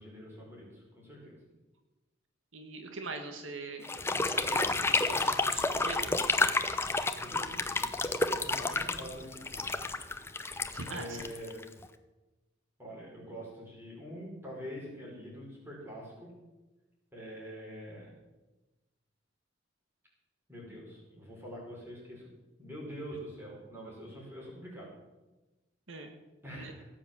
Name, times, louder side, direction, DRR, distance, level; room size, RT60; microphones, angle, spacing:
voice 1, 0.0-1.4 7.2-7.9 8.3-9.6 10.9-11.6 12.8-16.3 17.1-18.1 20.5-22.3 22.6-24.9 26.4-26.9, equal, 10° right, -4 dB, 5.2 m, -45 dB
voice 2, 2.5-3.9 4.2-6.3 10.7-11.3 25.9-26.1 26.6-26.7, right 3 dB, 75° right, 5 dB, 1.6 m, -42 dB
sound 1, 3.8-11.9, left 3 dB, 10° left, 0.6 m, -30 dB
17.5 x 7.5 x 7.4 m, 1.1 s
head